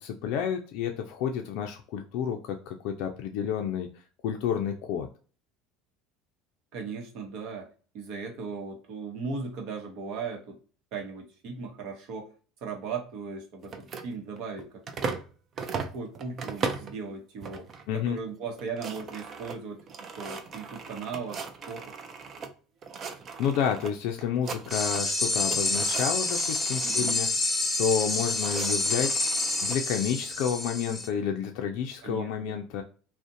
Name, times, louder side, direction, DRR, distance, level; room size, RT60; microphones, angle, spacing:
voice 1, 0.0-3.9 4.2-5.1 17.9-18.2 23.4-27.3 27.8-29.1 29.6-32.8, left 8 dB, 70° left, 3 dB, 0.3 m, -30 dB
voice 2, 6.7-7.7 7.9-10.6 10.9-12.3 12.6-15.2 15.7-17.7 17.9-21.9 26.8-27.2 32.0-32.6, right 5 dB, 65° right, 3 dB, 0.8 m, -37 dB
sound 1, 13.6-15.3 15.6-17.0 17.4-17.9 18.2-18.3 18.5-22.5 22.8-23.9 24.2-25.1 25.4-27.2 28.0-29.8, right 5 dB, 45° right, 0.4 m, -38 dB
sound 2, 24.7-31.1, left 2 dB, 15° left, 0.7 m, -28 dB
2.5 x 2.0 x 2.5 m, 0.38 s
hypercardioid pair, 80°, 0 cm